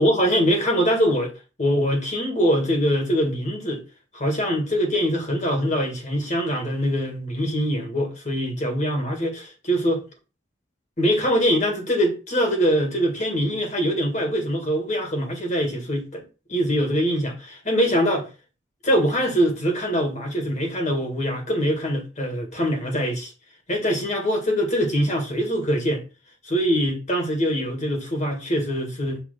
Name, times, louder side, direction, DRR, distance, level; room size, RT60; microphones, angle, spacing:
voice 1, 0.0-1.3 1.6-3.8 4.1-10.0 11.0-16.2 16.5-18.3 18.8-23.3 23.7-26.0 26.4-29.2, equal, 40° left, 2.0 m, -23 dB
6.0 x 3.1 x 5.8 m
head